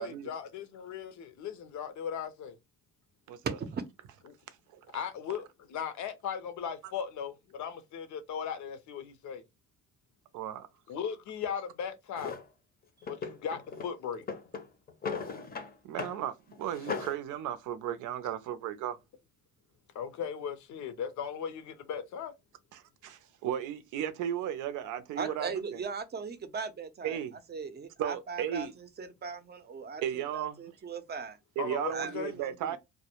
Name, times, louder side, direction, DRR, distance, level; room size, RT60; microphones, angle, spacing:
voice 1, 0.0-2.6 4.9-9.4 10.9-12.3 13.1-14.2 19.9-22.3 25.2-25.3 31.6-32.3, left 7 dB, 70° left, 0.6 m, -37 dB
voice 2, 3.4-3.8 25.2-27.2 27.5-31.4 31.9-32.8, right 5 dB, 35° right, 0.5 m, -38 dB
voice 3, 10.3-10.7 15.8-19.0 22.7-25.8 27.0-27.3 28.0-28.7 30.0-30.7 31.6-32.8, right 10 dB, 85° right, 0.5 m, -35 dB
Drawer open or close, 12.2-12.4 13.0-13.9 14.2-15.7 16.0-16.2 16.5-17.2, left 5 dB, 30° left, 0.6 m, -37 dB
2.1 x 2.0 x 2.8 m
cardioid pair, 90°, 30 cm